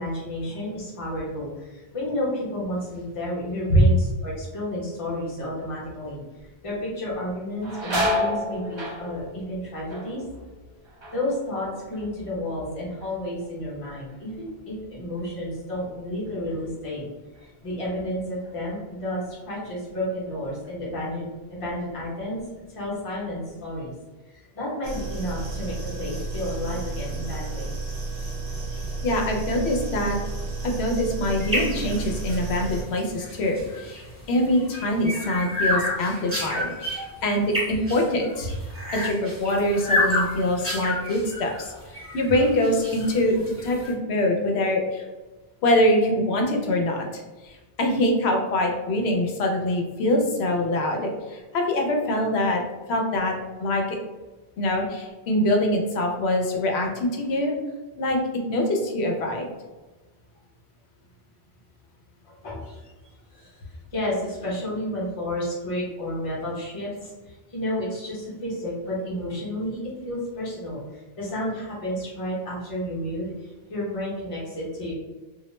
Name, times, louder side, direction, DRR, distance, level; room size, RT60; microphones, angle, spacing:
voice 1, 0.0-10.2 11.1-17.1 17.4-23.9 24.3-27.7 62.2-62.8 63.3-63.6 63.9-74.9, left 1 dB, 35° left, -6 dB, 0.8 m, -31 dB
sound 1, 6.4-6.8 7.1-12.7 13.0-13.6 14.1-17.0 17.3-17.5 18.4-18.6 19.1-20.2 20.6-20.8 21.4-22.0 22.4-23.5, left 1 dB, 45° right, 0.4 m, -33 dB
sound 2, 24.8-32.8, right 3 dB, 65° right, 0.8 m, -32 dB
voice 2, 29.0-30.2 30.6-38.5 38.9-41.7 42.1-45.0 45.6-52.6 52.9-53.3 53.6-54.0 54.6-57.6 58.0-58.2 58.5-59.5, left 1 dB, 80° left, 2 dB, 0.8 m, -24 dB
sound 3, 31.4-43.9, left 1 dB, 15° right, 0.7 m, -30 dB
2.3 x 2.0 x 3.0 m, 1.2 s
omnidirectional pair, 1.1 m